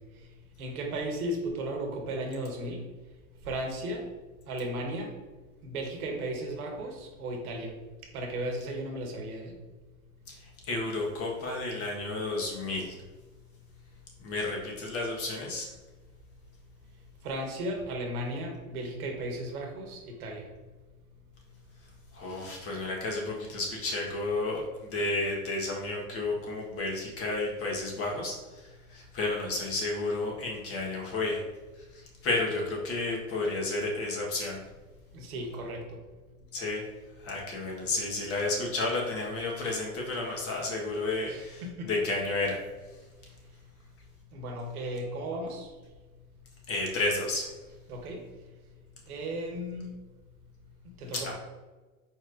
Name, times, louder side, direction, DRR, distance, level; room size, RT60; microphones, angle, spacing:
voice 1, 0.6-2.8 3.4-4.1 4.5-5.1 5.6-7.7 8.1-9.5 17.2-20.5 35.1-36.0 41.3-41.9 44.3-45.7 47.9-48.2 49.1-49.9 51.0-51.3, right 1 dB, 85° right, 2 dB, 1.2 m, -35 dB
voice 2, 10.3-13.0 14.2-15.7 22.1-31.4 31.9-34.6 36.5-36.8 37.2-42.6 46.7-47.5 51.2-51.3, left 2 dB, 30° left, -1 dB, 1.3 m, -32 dB
4.6 x 4.3 x 2.5 m, 1.2 s
hypercardioid pair, 115°, 43 cm